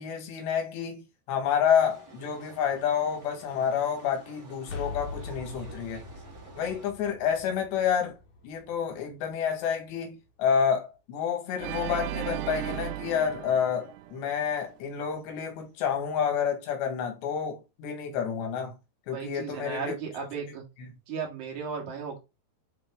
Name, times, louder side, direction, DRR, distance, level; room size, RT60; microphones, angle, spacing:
voice 1, 0.0-6.0 6.6-8.2 8.4-18.8 19.1-20.0, left 7 dB, 90° left, 3.8 m, -29 dB
sound 1, 1.8-6.9, right 4 dB, 30° right, 1.8 m, -51 dB
sound 2, 4.6-10.3, left 4 dB, 70° left, 1.9 m, -43 dB
Organ, 11.6-14.7, right 13 dB, 85° right, 2.7 m, -36 dB
voice 2, 19.1-20.6 21.1-22.2, right 6 dB, 50° right, 3.4 m, -35 dB
10.5 x 3.7 x 3.6 m
omnidirectional pair, 4.8 m